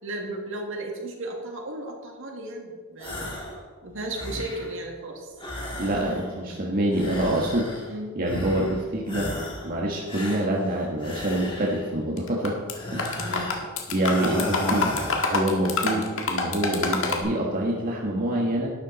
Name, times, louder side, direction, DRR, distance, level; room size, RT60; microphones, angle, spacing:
voice 1, 0.0-3.3 3.8-5.3 7.9-8.2 13.2-13.5, right 1 dB, 65° right, 1 dB, 2.2 m, -35 dB
sound 1, 3.0-3.6 3.9-4.8 5.4-6.4 6.9-7.9 8.3-8.8 9.1-9.7 10.1-11.9 12.7-13.6 14.0-15.5, left 1 dB, 25° left, 2.9 m, -34 dB
voice 2, 5.8-7.7 8.1-9.3 9.6-12.6 12.9-13.3 13.9-14.9 15.3-18.7, right 1 dB, 45° right, -2 dB, 1.5 m, -26 dB
sound 2, 12.2-12.7 13.0-17.2, left 4 dB, 65° left, 1.8 m, -26 dB
12.0 x 11.0 x 4.1 m, 1.4 s
head